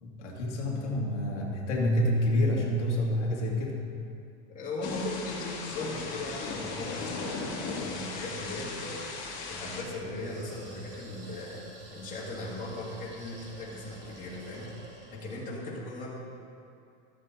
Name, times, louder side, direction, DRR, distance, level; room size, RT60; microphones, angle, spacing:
voice 1, 0.0-3.8, left 1 dB, 90° left, -3 dB, 2.1 m, -28 dB
voice 2, 4.5-9.1 9.5-14.7 15.1-16.1, left 2 dB, 25° left, -6 dB, 2.5 m, -38 dB
Thunder / Rain, 4.8-9.8, left 3 dB, 45° left, 2.2 m, -37 dB
sound 1, 10.1-15.5, right 1 dB, 30° right, 2.3 m, -49 dB
13.0 x 7.4 x 4.2 m, 2.5 s
supercardioid pair, 130°, 35 cm